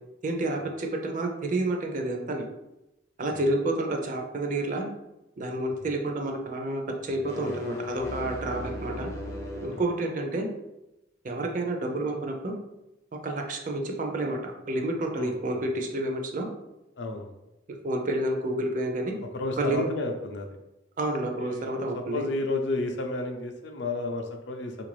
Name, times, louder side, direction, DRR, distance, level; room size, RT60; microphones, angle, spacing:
voice 1, 0.2-2.5 3.2-4.9 5.4-9.1 9.6-10.5 11.2-12.5 13.2-16.5 17.8-19.2 19.6-19.9 21.0-22.3, right 2 dB, 45° right, 3 dB, 0.4 m, -29 dB
sound 1, 7.1-9.9, left 2 dB, 15° left, 0.4 m, -37 dB
voice 2, 15.2-15.6 17.0-17.3 19.3-20.6 21.3-21.7 21.9-24.9, left 2 dB, 70° left, 4 dB, 0.5 m, -32 dB
3.2 x 2.5 x 3.2 m, 0.93 s
head